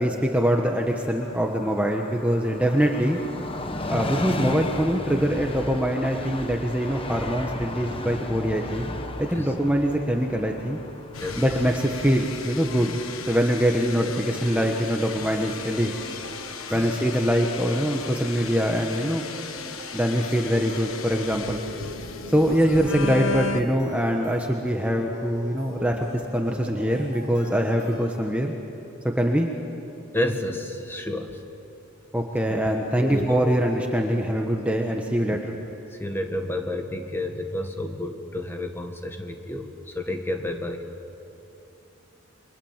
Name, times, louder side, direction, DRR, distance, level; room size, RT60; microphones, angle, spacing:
voice 1, 0.0-3.2 3.9-8.9 9.2-10.8 11.4-15.9 16.7-19.3 19.9-21.6 22.3-28.5 29.0-29.5 32.1-35.6, equal, 5° right, 1 dB, 1.2 m, -23 dB
Train, 0.8-14.1 14.4-14.5, left 1 dB, 25° left, 1.2 m, -35 dB
sound 1, 11.1-23.6, left 4 dB, 90° left, 1.4 m, -36 dB
sound 2, 13.8-28.5, right 1 dB, 45° right, 3.5 m, -43 dB
voice 2, 30.1-31.4 32.5-32.6 33.0-33.5 35.3-35.4 35.9-40.8, left 1 dB, 10° left, 4 dB, 1.6 m, -30 dB
29.0 x 23.5 x 7.4 m, 2.9 s
head